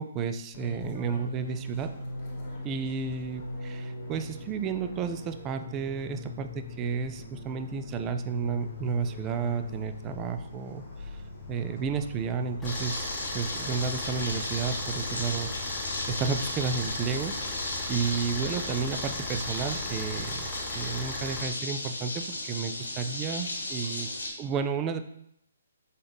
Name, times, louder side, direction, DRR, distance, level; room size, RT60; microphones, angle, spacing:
voice 1, 0.0-1.9 2.6-10.8 11.5-13.1 13.3-15.5 15.9-24.1 24.4-25.0, right 6 dB, 20° right, 8 dB, 0.3 m, -32 dB
Fixed-wing aircraft airplane, 0.5-20.3, left 2 dB, 35° left, 1.2 m, -42 dB
sound 1, 12.6-24.3, left 1 dB, 75° left, 1.0 m, -35 dB
Car / Idling, 12.6-21.4, left 2 dB, 10° left, 0.7 m, -39 dB
3.9 x 3.7 x 3.5 m, 0.74 s
figure-of-eight pair, 135°, 0 cm